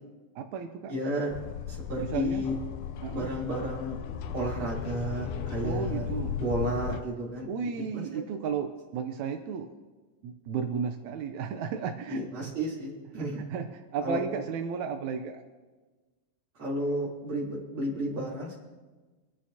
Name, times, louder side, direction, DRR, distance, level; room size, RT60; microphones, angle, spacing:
voice 1, 0.3-0.9 2.0-2.4 3.0-3.3 5.6-6.4 7.5-9.7 10.2-12.5 13.1-15.4, right 6 dB, 80° right, 5 dB, 1.7 m, -34 dB
voice 2, 0.9-1.3 1.7-2.5 3.1-4.0 4.3-6.1 6.4-7.5 7.9-8.2 12.1-13.5 14.0-14.2 16.6-18.6, right 1 dB, 35° right, -6 dB, 4.0 m, -32 dB
sound 1, 1.3-7.0, left 9 dB, 85° left, 1.8 m, -36 dB
25.0 x 11.0 x 2.8 m, 1.3 s
omnidirectional pair, 4.1 m